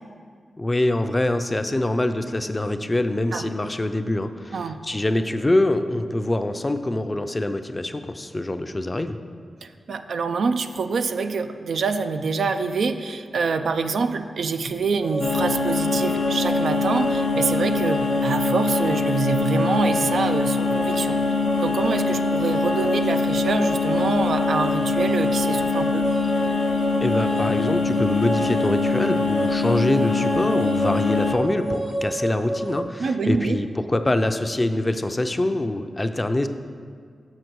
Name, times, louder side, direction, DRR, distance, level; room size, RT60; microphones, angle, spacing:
voice 1, 0.6-9.2 27.0-36.5, left 1 dB, 25° left, 8 dB, 0.4 m, -24 dB
voice 2, 4.5-4.8 9.6-26.1 33.0-33.6, right 4 dB, 80° right, 8 dB, 0.3 m, -26 dB
sound 1, 15.0-32.8, right 1 dB, 50° right, 0.7 m, -29 dB
sound 2, 15.2-31.3, left 4 dB, 75° left, 0.6 m, -24 dB
6.5 x 5.8 x 4.6 m, 2.1 s
cardioid pair, 55°, 0 cm